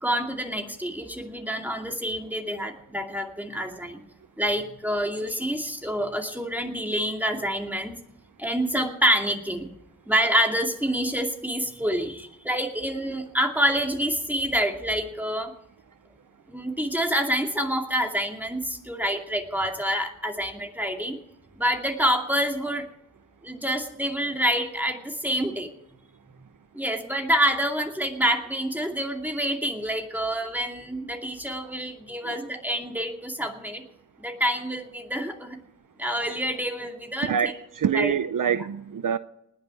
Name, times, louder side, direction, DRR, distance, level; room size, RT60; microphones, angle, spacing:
voice 1, 0.0-4.0 4.4-7.9 8.4-9.7 10.1-15.5 16.5-21.2 21.6-22.9 23.4-25.7 26.7-33.8 34.2-35.6 36.0-37.5 37.9-38.1, equal, 5° right, 2.4 m, -27 dB
voice 2, 37.2-39.2, right 8 dB, 75° right, 0.6 m, -26 dB
19.5 x 6.7 x 9.0 m
wide cardioid pair, 80°, 32 cm